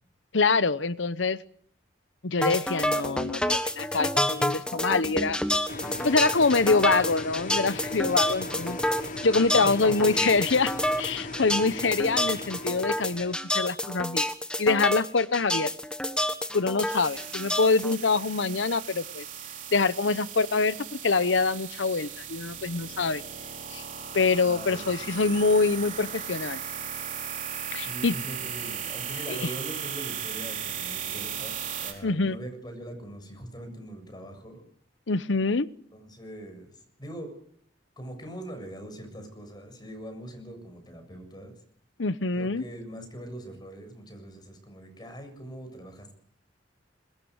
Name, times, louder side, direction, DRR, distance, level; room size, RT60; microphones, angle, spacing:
voice 1, 0.3-1.4 2.2-5.4 6.0-8.8 9.2-10.7 11.0-14.3 14.6-15.7 16.5-19.2 19.7-23.2 23.7-23.8 24.1-26.6 27.7-28.2 29.3-29.5 32.0-32.4 35.1-35.7 42.0-42.6, left 4 dB, 75° left, 16 dB, 0.9 m, -25 dB
sound 1, 2.4-18.0, left 1 dB, 5° left, 1.3 m, -29 dB
sound 2, 5.7-13.4, left 2 dB, 45° left, 1.2 m, -38 dB
voice 2, 9.4-10.3 24.4-25.4 27.7-34.6 35.9-36.7 37.0-37.3 38.0-41.6 42.4-46.1, right 1 dB, 20° left, 7 dB, 7.2 m, -42 dB
sound 3, 16.9-31.9, right 8 dB, 45° right, 5.0 m, -37 dB
21.5 x 21.0 x 8.1 m, 0.64 s
head